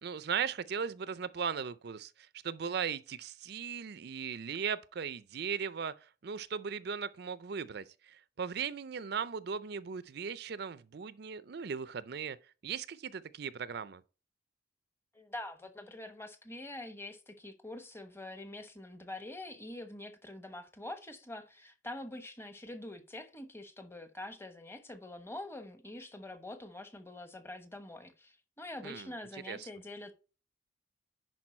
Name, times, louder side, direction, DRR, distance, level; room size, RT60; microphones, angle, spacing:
voice 1, 0.0-12.4 12.6-14.0 28.8-29.1 29.5-29.7, right 6 dB, 55° right, 0.5 m, -38 dB
voice 2, 15.1-30.1, left 1 dB, 15° left, 1.0 m, -45 dB
10.5 x 4.6 x 4.3 m
head